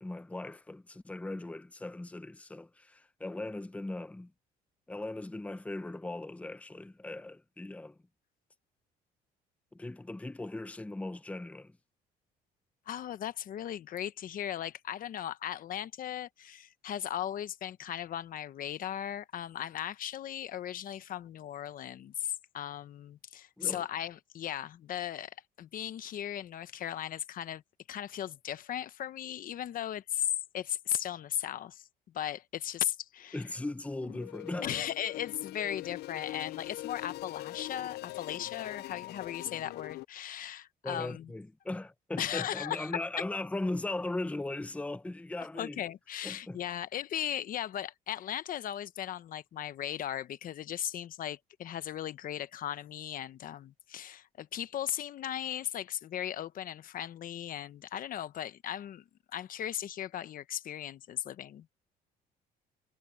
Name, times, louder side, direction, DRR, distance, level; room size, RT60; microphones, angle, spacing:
voice 1, 0.0-4.3 4.9-8.0 9.7-11.7 23.6-23.8 33.3-34.7 40.8-45.8 46.2-46.6, left 2 dB, 10° left, 0.8 m, -38 dB
voice 2, 12.9-27.6 27.9-31.9 32.1-33.4 34.6-41.3 42.2-43.0 45.5-59.0 59.3-61.7, left 11 dB, 55° left, 1.0 m, -37 dB
sound 1, 34.0-40.0, left 17 dB, 75° left, 0.4 m, -42 dB
cardioid pair, 110°, 17 cm